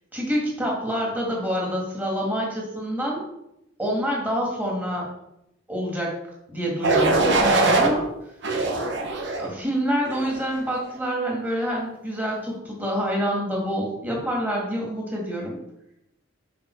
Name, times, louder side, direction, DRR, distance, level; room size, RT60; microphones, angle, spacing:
voice 1, 0.1-3.2 3.8-5.1 5.7-6.1 6.5-8.1 9.4-15.6, equal, 10° right, -3 dB, 2.0 m, -27 dB
sound 1, 6.8-7.9 8.4-9.5 10.0-10.4, right 3 dB, 55° right, 1.2 m, -21 dB
6.9 x 5.1 x 4.6 m, 0.83 s
head